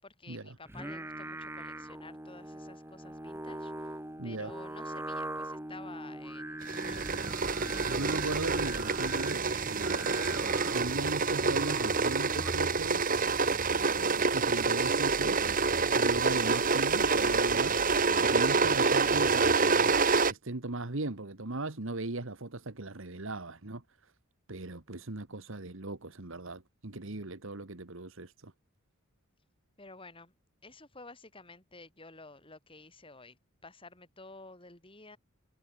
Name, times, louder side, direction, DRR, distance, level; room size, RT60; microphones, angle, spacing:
voice 1, 0.0-3.9 4.2-7.1 29.8-30.3 30.6-35.2, left 3 dB, 25° left, 6.7 m, -51 dB
Singing, 0.7-12.8, right 1 dB, 10° right, 2.2 m, -41 dB
voice 2, 4.2-4.5 7.8-10.1 10.7-13.1 14.3-15.4 15.9-17.8 18.2-20.0 20.3-23.8 24.5-28.5, right 2 dB, 60° right, 1.6 m, -38 dB
sound 1, 6.7-20.3, right 4 dB, 40° right, 1.7 m, -27 dB
head